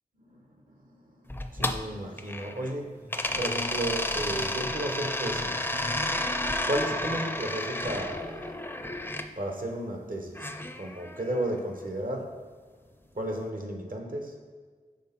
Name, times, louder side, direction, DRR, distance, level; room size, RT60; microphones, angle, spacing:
voice 1, 0.2-6.2 6.5-8.9 9.2-12.4 13.1-14.4, right 1 dB, 65° right, 2 dB, 1.0 m, -34 dB
sound 1, 1.3-2.7 3.1-9.3 10.4-11.5, left 1 dB, 15° left, 0.4 m, -31 dB
6.3 x 3.6 x 5.7 m, 1.5 s
wide cardioid pair, 45°, 15 cm